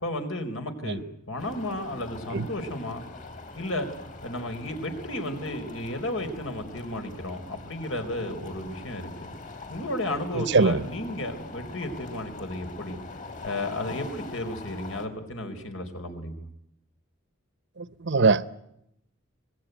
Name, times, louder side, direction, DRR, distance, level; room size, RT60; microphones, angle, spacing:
voice 1, 0.0-3.0 3.6-3.9 4.2-9.1 9.7-13.0 13.4-16.4, left 1 dB, 80° left, 4.3 m, -33 dB
sound 1, 1.4-15.1, left 2 dB, 40° left, 3.7 m, -42 dB
voice 2, 10.3-10.8 17.8-18.5, right 4 dB, 60° right, 0.9 m, -22 dB
25.5 x 20.5 x 9.3 m
head